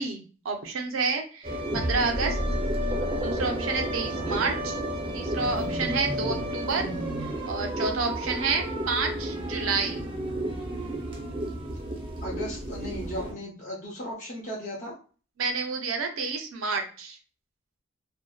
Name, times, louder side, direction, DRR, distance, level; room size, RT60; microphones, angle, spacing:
voice 1, 0.0-2.4 3.2-4.8 5.1-6.9 7.5-10.0 15.4-17.2, right 4 dB, 85° right, 4 dB, 0.5 m, -29 dB
sound 1, 1.4-13.3, right 1 dB, 25° right, 0.5 m, -31 dB
voice 2, 4.1-4.4 6.0-6.3 8.2-8.4 12.2-15.0, equal, 40° left, -4 dB, 0.6 m, -37 dB
2.6 x 2.1 x 2.2 m, 0.38 s
head